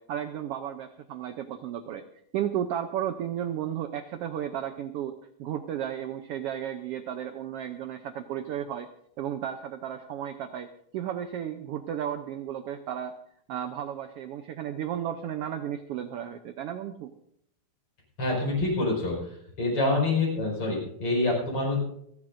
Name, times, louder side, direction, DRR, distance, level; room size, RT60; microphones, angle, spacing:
voice 1, 0.0-2.0 2.3-8.9 9.2-13.1 13.5-17.1, right 10 dB, 75° right, 8 dB, 1.4 m, -34 dB
voice 2, 18.2-21.8, left 2 dB, 50° left, -2 dB, 5.8 m, -26 dB
28.0 x 11.0 x 2.6 m, 0.71 s
omnidirectional pair, 3.4 m